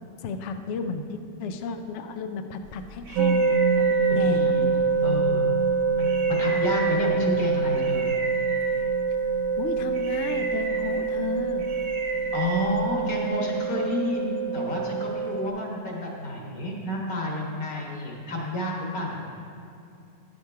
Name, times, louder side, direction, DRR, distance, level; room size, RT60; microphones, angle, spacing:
voice 1, 0.2-4.6 7.1-7.6 9.6-11.7, left 4 dB, 85° left, 7 dB, 0.6 m, -33 dB
sound 1, 2.6-13.3, right 2 dB, 90° right, 1.5 m, -38 dB
sound 2, 3.2-15.5, right 5 dB, 70° right, 1.0 m, -25 dB
voice 2, 4.1-4.7 5.0-5.6 6.0-8.2 12.3-19.3, left 1 dB, 55° left, -2 dB, 1.9 m, -30 dB
10.5 x 6.5 x 4.6 m, 2.6 s
omnidirectional pair, 1.9 m